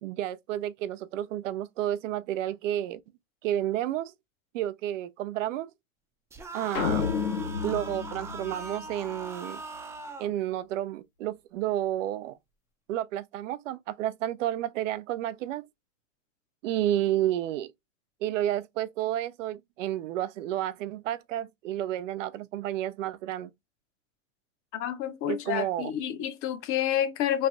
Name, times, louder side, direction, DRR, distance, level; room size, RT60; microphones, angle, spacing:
voice 1, 0.0-3.0 3.4-4.1 4.5-5.7 6.5-7.1 7.6-9.6 10.2-12.4 12.9-15.6 16.6-17.7 18.2-23.5 25.3-25.9, right 12 dB, 70° right, 0.5 m, -31 dB
sound 1, 6.3-10.3, right 3 dB, 5° right, 0.5 m, -41 dB
sound 2, 6.7-9.2, left 6 dB, 80° left, 1.2 m, -31 dB
voice 2, 24.7-27.5, left 11 dB, 35° left, 0.7 m, -29 dB
3.2 x 2.2 x 3.8 m
hypercardioid pair, 120°, 39 cm